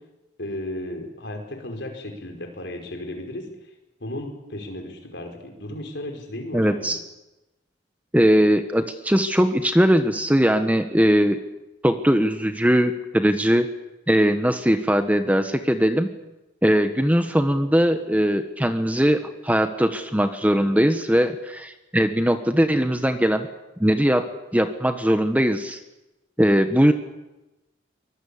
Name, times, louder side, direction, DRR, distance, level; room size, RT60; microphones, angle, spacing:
voice 1, 0.4-3.5 4.0-6.9, left 1 dB, 60° left, 3 dB, 5.1 m, -34 dB
voice 2, 6.5-7.0 8.1-11.4 11.8-13.7 14.1-16.1 16.6-23.5 23.8-25.8 26.4-26.9, equal, 10° right, 8 dB, 1.1 m, -20 dB
24.0 x 21.0 x 8.5 m, 1.0 s
head